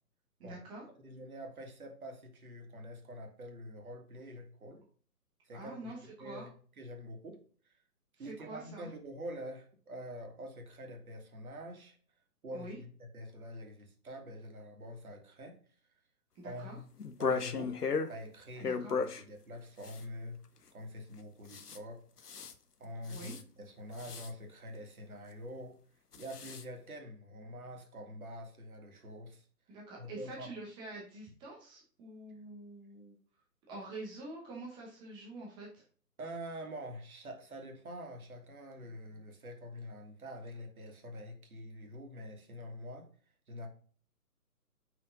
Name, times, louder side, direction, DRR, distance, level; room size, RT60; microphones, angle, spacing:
voice 1, 0.4-0.8 5.5-6.5 8.1-8.9 12.5-12.8 16.3-16.8 18.6-19.0 23.1-23.3 29.7-33.2 33.7-35.8, right 2 dB, 10° right, -2 dB, 1.0 m, -46 dB
voice 2, 1.0-4.8 5.4-5.9 6.2-6.5 6.8-7.4 8.2-12.0 12.4-15.6 16.4-16.9 17.2-17.8 18.1-20.4 20.7-22.3 22.8-25.8 26.2-29.4 30.0-30.5 36.2-43.1 43.5-43.7, equal, 60° right, 3 dB, 2.0 m, -46 dB
sound 1, 17.0-18.1 18.6-19.2 19.8-20.0 21.5-21.8 22.2-22.5 23.1-23.4 24.0-24.3 26.1-26.6, left 5 dB, 75° left, 1.0 m, -35 dB
5.6 x 5.0 x 3.9 m, 0.43 s
figure-of-eight pair, 140°, 47 cm